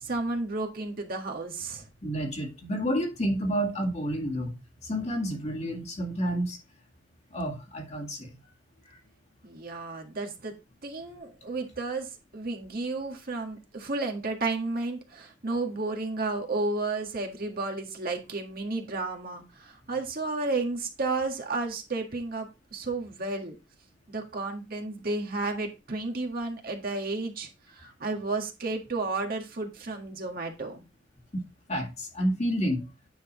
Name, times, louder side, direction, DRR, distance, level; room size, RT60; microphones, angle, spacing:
voice 1, 0.0-1.8 9.4-10.5 10.8-23.5 24.1-30.8, right 3 dB, 50° right, 1.6 m, -32 dB
voice 2, 2.0-4.5 4.9-6.6 7.3-8.3 31.3-31.4 31.7-32.8, equal, 35° left, 1.9 m, -29 dB
9.5 x 5.9 x 3.0 m
head